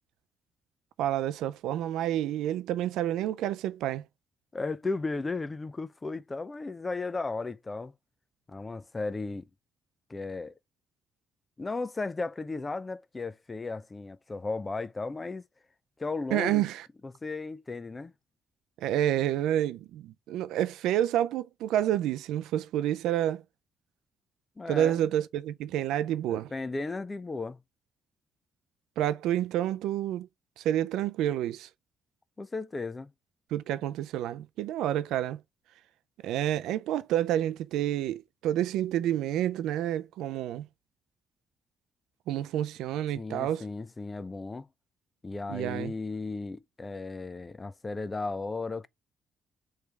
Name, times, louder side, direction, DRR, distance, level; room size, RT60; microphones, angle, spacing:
voice 1, 1.0-4.0 16.3-16.9 18.8-23.4 24.7-26.5 29.0-30.3 30.6-31.7 33.5-35.4 36.2-40.7 42.3-43.6 45.5-45.9, right 12 dB, 90° right, 0.3 m, -29 dB
voice 2, 4.5-7.9 8.5-9.5 10.1-10.5 11.6-15.4 16.0-16.6 17.0-18.1 24.6-25.0 26.3-27.6 32.4-33.1 43.1-44.7 45.2-48.9, left 3 dB, 25° left, 0.4 m, -35 dB
3.2 x 3.2 x 4.6 m
cardioid pair, 90°, 0 cm